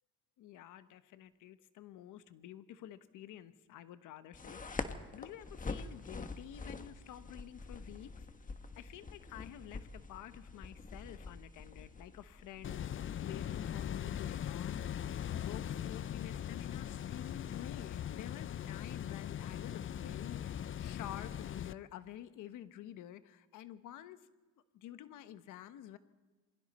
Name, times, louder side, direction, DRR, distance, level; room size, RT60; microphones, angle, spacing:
voice 1, 0.4-8.1 8.8-12.9 13.1-14.8 15.3-24.2 24.7-26.0, left 11 dB, 90° left, 11 dB, 1.2 m, -50 dB
sound 1, 4.3-17.8, left 3 dB, 25° left, 1.5 m, -47 dB
sound 2, 12.6-21.7, left 10 dB, 45° left, 0.5 m, -40 dB
27.5 x 22.0 x 4.3 m, 1.2 s
cardioid pair, 90°, 30 cm